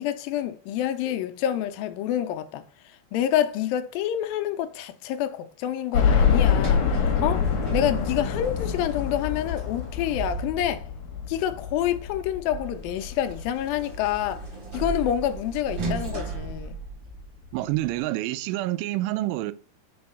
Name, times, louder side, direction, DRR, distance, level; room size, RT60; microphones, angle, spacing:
voice 1, 0.0-2.6 3.1-10.9 11.3-14.5 14.7-16.8, left 11 dB, 80° left, 2.2 m, -27 dB
sound 1, 5.9-14.8 15.3-15.4 15.8-15.9 17.1-17.2 17.5-17.6, left 7 dB, 60° left, 1.8 m, -26 dB
Sliding door, 6.1-10.9 12.5-17.5, right 4 dB, 45° right, 1.7 m, -35 dB
voice 2, 17.5-19.5, right 16 dB, 80° right, 2.1 m, -27 dB
5.5 x 4.4 x 5.4 m
omnidirectional pair, 4.4 m